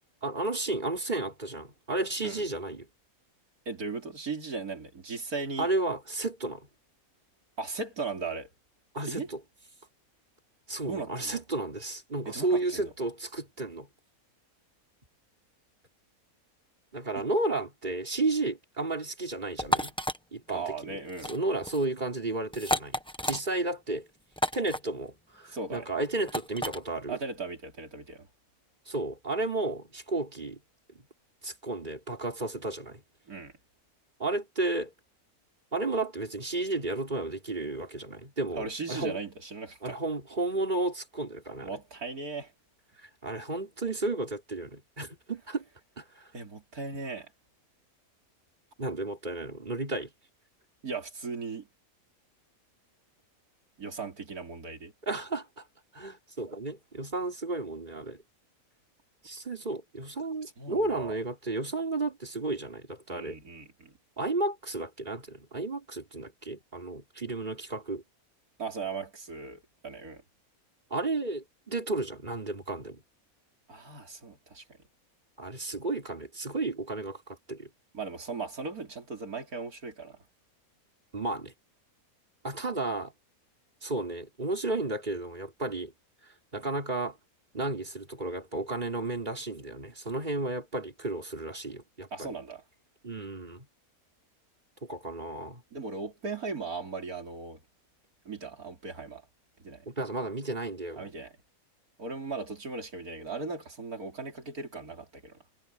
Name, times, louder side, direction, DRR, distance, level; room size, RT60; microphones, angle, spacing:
voice 1, 0.2-2.9 5.6-6.7 8.9-9.4 10.7-13.9 16.9-19.9 20.3-21.0 21.3-23.0 23.2-24.1 24.5-27.2 28.9-30.6 31.4-33.0 34.2-34.9 35.7-39.2 39.8-41.8 43.0-45.6 46.0-46.3 48.8-50.1 55.0-55.7 55.9-58.2 59.2-63.4 64.2-68.0 70.9-73.0 75.4-77.7 81.1-81.5 82.4-83.1 83.8-85.9 86.2-87.2 87.5-92.3 93.0-93.7 94.8-95.6 99.9-101.1, right 2 dB, 30° right, 4.2 m, -33 dB
voice 2, 3.7-5.7 7.6-8.5 9.1-9.3 10.9-11.4 12.3-12.9 17.2-17.3 20.5-21.3 25.5-25.9 27.1-28.3 33.3-33.5 38.5-40.0 41.6-42.5 46.3-47.3 50.8-51.7 53.8-54.9 60.6-61.1 63.1-63.9 68.6-70.2 73.7-74.6 77.9-80.2 92.1-92.6 95.7-97.6 98.3-99.2 99.6-99.9 101.0-101.4 102.0-105.4, right 4 dB, 85° right, 3.8 m, -37 dB
sound 1, 19.6-20.2 21.1-21.4 21.6-21.8 22.5-23.4 24.4-24.8 26.3-26.8, equal, 5° left, 1.0 m, -30 dB
omnidirectional pair, 1.5 m